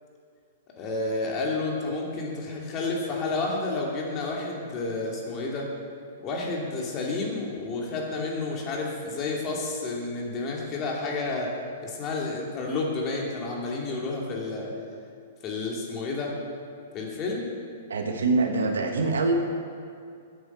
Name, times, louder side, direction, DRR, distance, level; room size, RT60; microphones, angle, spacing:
voice 1, 0.8-5.7 6.2-11.5 11.8-14.7 15.4-16.3 16.9-17.5, left 3 dB, 35° left, -1 dB, 2.6 m, -30 dB
voice 2, 17.9-19.3, right 3 dB, 85° right, 4 dB, 1.3 m, -24 dB
10.0 x 7.7 x 6.9 m, 2.4 s
hypercardioid pair, 130°, 0 cm